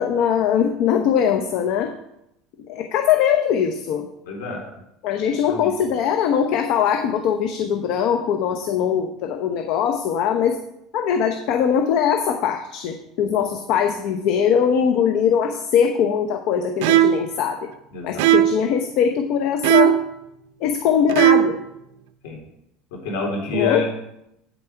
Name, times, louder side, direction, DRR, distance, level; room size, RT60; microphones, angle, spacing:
voice 1, 0.0-1.9 2.7-4.1 5.0-10.6 10.9-17.6 18.0-20.0 20.6-21.6 23.5-23.9, left 8 dB, 60° left, 5 dB, 0.8 m, -21 dB
voice 2, 4.3-4.6 5.5-5.7 17.9-18.3 22.2-22.4 22.9-23.9, left 4 dB, 90° left, -1 dB, 3.3 m, -27 dB
sound 1, 16.8-17.3 18.2-18.7 19.6-20.1 21.1-21.6, right 12 dB, 80° right, 0.5 m, -17 dB
9.1 x 7.1 x 4.6 m, 0.82 s
cardioid pair, 140°, 0 cm